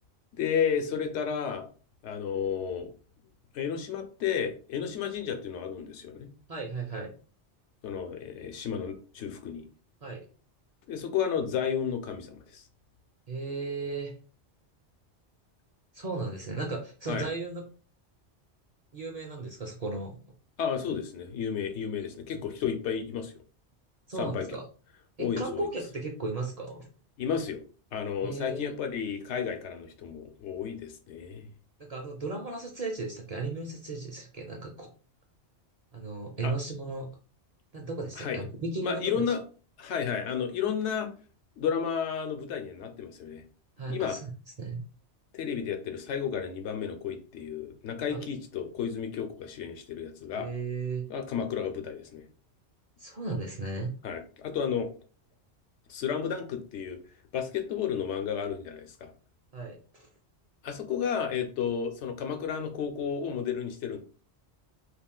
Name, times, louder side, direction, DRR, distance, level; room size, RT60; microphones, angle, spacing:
voice 1, 0.3-1.7 2.0-2.9 3.5-6.3 7.8-9.6 10.9-12.6 17.1-17.3 20.6-23.3 24.2-24.5 25.2-25.7 27.2-27.6 27.9-31.5 36.4-36.5 38.2-38.4 38.8-39.4 39.8-41.1 41.6-43.4 43.9-44.2 45.3-50.5 51.1-52.3 54.0-54.9 55.9-57.0 57.3-59.1 60.6-64.0, left 7 dB, 80° left, 6 dB, 0.9 m, -32 dB
voice 2, 6.5-7.1 10.0-10.2 13.3-14.1 15.9-17.6 18.9-20.2 24.1-24.6 25.2-26.9 28.2-28.7 31.8-34.9 35.9-37.1 37.7-39.2 43.8-44.3 44.6-44.8 48.1-48.2 50.4-51.1 53.0-53.9 59.5-60.1, right 3 dB, 45° right, 1 dB, 0.5 m, -35 dB
2.4 x 2.4 x 3.6 m, 0.38 s
omnidirectional pair, 1.2 m